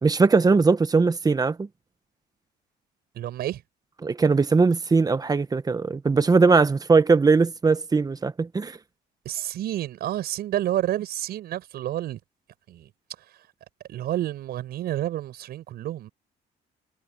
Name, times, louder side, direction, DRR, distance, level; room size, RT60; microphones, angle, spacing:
voice 1, 0.0-1.7 4.0-8.8, right 4 dB, 20° right, 1.3 m, -20 dB
voice 2, 3.1-3.6 9.2-12.2 12.7-12.9 13.9-16.1, right 13 dB, 70° right, 5.9 m, -29 dB
cardioid pair, 110°, 17 cm